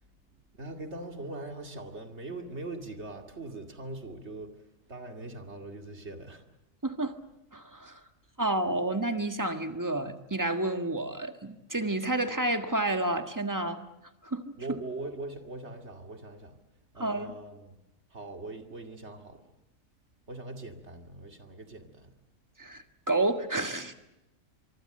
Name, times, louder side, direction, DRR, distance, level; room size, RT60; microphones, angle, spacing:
voice 1, 0.5-4.5 4.9-6.4 14.6-16.5 16.9-17.7 18.1-19.4 20.3-22.1, right 2 dB, 55° right, 4 dB, 2.6 m, -41 dB
voice 2, 6.8-7.2 7.5-8.0 8.4-13.8 14.2-14.5 17.0-17.3 22.6-23.9, right 2 dB, 15° right, 7 dB, 1.5 m, -30 dB
24.5 x 24.0 x 7.8 m, 0.93 s
omnidirectional pair, 1.4 m